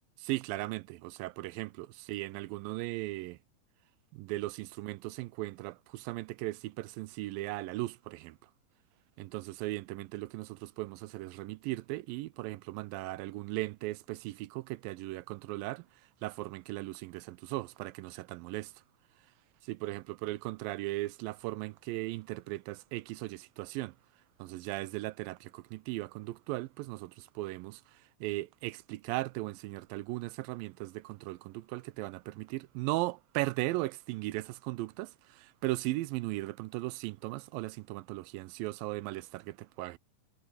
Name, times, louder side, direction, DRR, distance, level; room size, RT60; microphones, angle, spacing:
voice 1, 0.2-3.4 4.1-8.4 9.2-15.9 16.2-18.7 19.6-23.9 24.4-40.0, right 19 dB, 85° right, 2.3 m, -37 dB
omnidirectional pair, 4.1 m